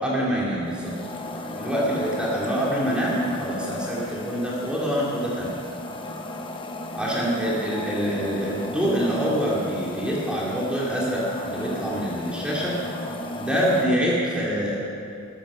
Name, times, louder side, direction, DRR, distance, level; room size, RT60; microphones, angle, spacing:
voice 1, 0.0-1.0 1.5-5.6 6.9-12.8 13.4-14.8, equal, 5° right, -6 dB, 2.6 m, -25 dB
sound 1, 0.6-13.9, left 1 dB, 25° left, 1.0 m, -35 dB
13.5 x 11.5 x 7.1 m, 2.5 s
head